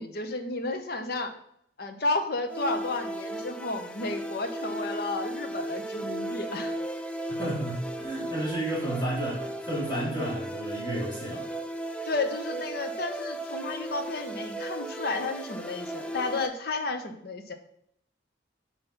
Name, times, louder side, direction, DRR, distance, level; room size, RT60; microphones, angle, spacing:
voice 1, 0.0-1.4 1.8-6.8 12.0-17.5, left 3 dB, 55° left, 7 dB, 0.8 m, -32 dB
sound 1, 2.5-16.5, right 1 dB, 5° left, 0.3 m, -36 dB
voice 2, 7.3-11.5, right 1 dB, 25° left, -5 dB, 2.6 m, -32 dB
5.4 x 4.7 x 5.7 m, 0.70 s
head